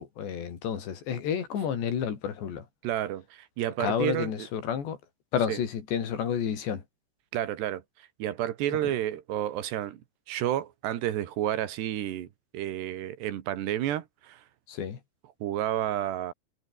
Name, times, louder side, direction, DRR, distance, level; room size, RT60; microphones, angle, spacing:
voice 1, 0.0-2.7 3.8-5.0 5.3-6.8 14.7-15.0, left 8 dB, 85° left, 5.8 m, -30 dB
voice 2, 2.8-4.5 5.5-5.6 7.3-7.8 8.2-10.0 10.3-12.3 12.5-14.4 15.4-16.3, right 12 dB, 80° right, 3.8 m, -30 dB
omnidirectional pair, 4.8 m